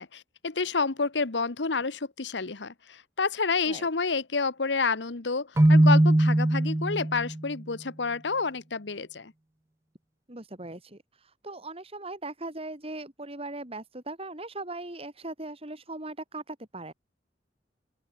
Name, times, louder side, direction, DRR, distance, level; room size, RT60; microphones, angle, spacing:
voice 1, 0.0-9.3, left 4 dB, 80° left, 1.2 m, -29 dB
Keyboard (musical), 5.6-7.4, right 1 dB, 15° right, 0.5 m, -20 dB
voice 2, 10.3-11.0 11.4-16.9, right 2 dB, 35° right, 4.6 m, -39 dB
open air
head